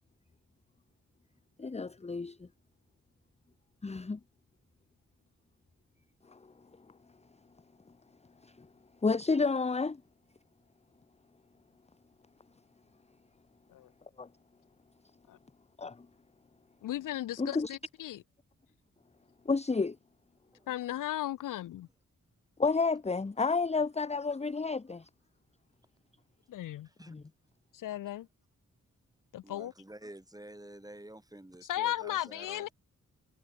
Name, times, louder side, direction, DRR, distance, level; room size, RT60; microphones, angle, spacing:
voice 1, 1.6-2.5 3.8-4.2 6.3-6.4 8.4-8.7 9.0-10.0 14.2-14.3 15.8-16.1 17.4-17.7 19.4-20.0 22.6-25.1 27.1-27.2, left 4 dB, 20° left, 0.8 m, -30 dB
voice 2, 16.8-18.2 20.7-21.9 26.5-26.9 27.7-28.3 29.3-29.7 31.6-32.7, left 13 dB, 80° left, 0.5 m, -36 dB
voice 3, 26.8-27.2 29.4-32.7, right 1 dB, 10° right, 5.6 m, -50 dB
cardioid pair, 70°, 31 cm